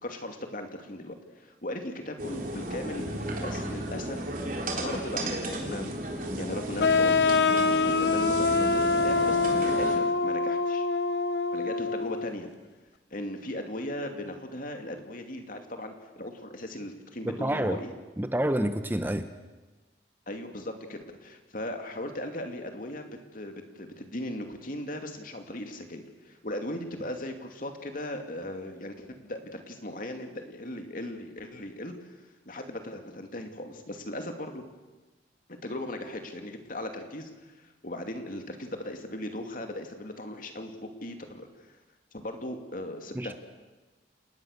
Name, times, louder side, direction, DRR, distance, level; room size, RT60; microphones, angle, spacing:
voice 1, 0.0-4.2 4.8-5.9 6.3-7.2 7.8-10.9 11.5-12.5 13.1-17.9 20.3-32.2 32.5-34.6 35.6-41.8 42.1-43.3, left 1 dB, 50° left, 5 dB, 2.6 m, -38 dB
sound 1, 2.2-10.0, right 1 dB, 50° right, 3.8 m, -34 dB
sound 2, 6.8-12.3, left 4 dB, 65° left, 0.8 m, -25 dB
voice 2, 17.2-17.8 18.2-19.3 43.1-43.3, right 1 dB, 10° right, 9 dB, 0.8 m, -28 dB
29.0 x 19.5 x 6.7 m, 1.2 s
head